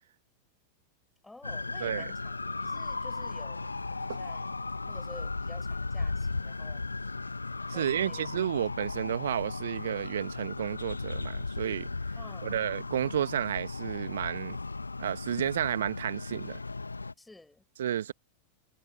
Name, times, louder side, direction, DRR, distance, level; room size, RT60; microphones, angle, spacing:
voice 1, 1.2-4.6 4.8-6.9 7.7-8.5 12.2-12.6 17.2-17.6, left 2 dB, 5° left, 6.0 m, -51 dB
sound 1, 1.4-17.1, left 3 dB, 80° left, 1.7 m, -36 dB
voice 2, 7.7-11.9 12.4-14.6 15.0-16.6 17.8-18.1, right 10 dB, 60° right, 1.9 m, -31 dB
figure-of-eight pair, 90°, 0 cm